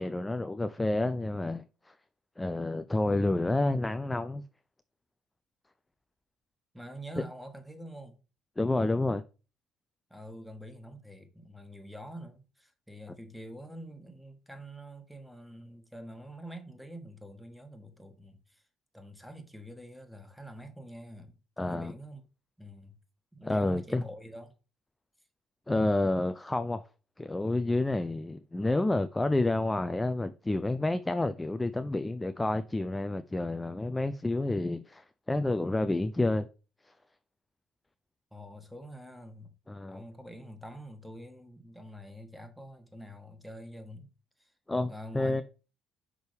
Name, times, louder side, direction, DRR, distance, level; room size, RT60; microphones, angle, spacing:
voice 1, 0.0-1.9 2.4-4.4 8.6-9.2 21.6-21.9 23.4-24.0 25.7-26.8 27.2-36.5 39.7-40.0 44.7-45.4, left 2 dB, 15° left, 0.4 m, -29 dB
voice 2, 6.7-8.2 10.1-18.6 18.9-22.2 22.6-23.0 23.3-24.5 38.3-39.5 39.9-44.1 44.4-44.5 44.9-45.4, equal, ahead, 1.4 m, -46 dB
6.1 x 5.2 x 3.4 m
figure-of-eight pair, 50°, 0 cm